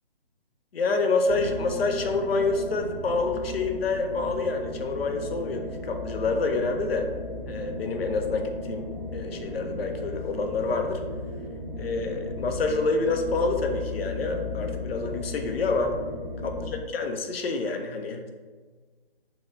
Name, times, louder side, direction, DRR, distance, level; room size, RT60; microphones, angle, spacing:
voice 1, 0.7-7.1 7.5-11.0 11.8-16.0 16.4-18.3, left 3 dB, 75° left, 5 dB, 0.6 m, -27 dB
sound 1, 1.2-16.7, left 2 dB, 15° right, 0.5 m, -36 dB
4.3 x 2.2 x 3.7 m, 1.4 s
hypercardioid pair, 160°, 30 cm